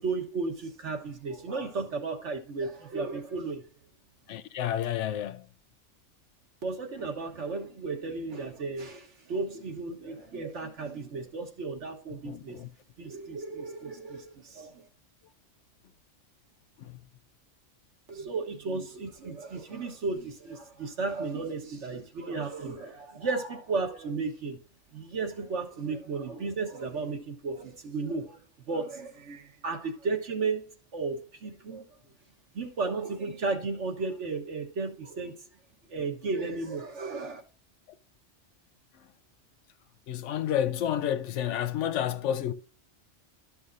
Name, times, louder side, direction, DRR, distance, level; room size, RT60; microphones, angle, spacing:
voice 1, 0.0-3.7 6.6-12.6 13.0-14.9 18.1-24.6 24.9-28.4 28.7-30.6 30.9-31.8 32.5-35.4 35.9-37.4, right 4 dB, 75° right, 1.6 m, -34 dB
voice 2, 4.3-5.4 12.2-12.7 40.1-42.5, left 10 dB, 85° left, 0.9 m, -30 dB
12.5 x 5.6 x 2.6 m
omnidirectional pair, 1.2 m